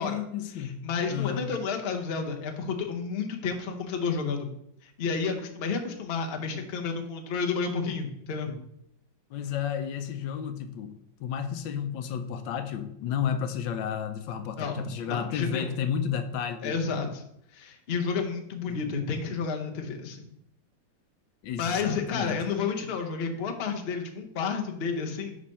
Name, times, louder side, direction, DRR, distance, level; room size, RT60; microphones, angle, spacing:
voice 1, 0.0-1.5 9.3-16.8 18.7-19.0 21.4-22.4, left 8 dB, 85° left, 9 dB, 1.3 m, -32 dB
voice 2, 0.8-4.5 4.8-8.6 14.6-15.7 16.6-17.2 17.5-20.3 21.6-25.4, left 5 dB, 45° left, 3 dB, 0.8 m, -31 dB
5.2 x 5.0 x 5.6 m, 0.74 s
omnidirectional pair, 2.0 m